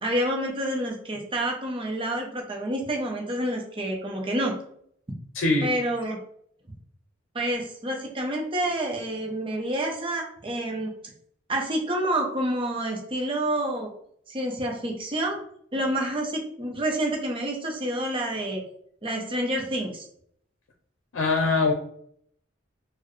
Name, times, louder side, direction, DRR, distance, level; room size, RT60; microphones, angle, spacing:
voice 1, 0.0-4.5 5.6-6.2 7.3-10.9 11.5-13.9 14.3-15.4 15.7-18.6 19.0-20.0, right 1 dB, 25° right, 1 dB, 0.7 m, -28 dB
voice 2, 5.3-5.7 21.1-21.7, left 3 dB, 85° left, 2 dB, 0.6 m, -22 dB
4.3 x 2.1 x 3.1 m, 0.66 s
head